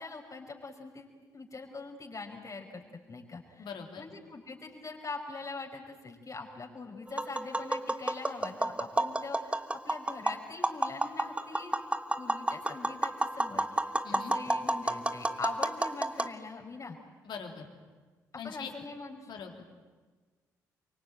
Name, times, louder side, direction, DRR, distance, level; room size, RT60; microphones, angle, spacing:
voice 1, 0.0-3.7 4.0-11.7 12.2-17.0 18.4-19.3, left 3 dB, 35° left, 1 dB, 5.5 m, -43 dB
voice 2, 3.6-4.0 14.0-14.3 17.2-17.6 18.4-18.7 19.3-19.6, left 6 dB, 60° left, 3 dB, 3.6 m, -41 dB
Tap, 7.1-16.3, right 2 dB, 15° right, 1.3 m, -31 dB
25.0 x 24.0 x 9.1 m, 1.4 s
hypercardioid pair, 40°, 9 cm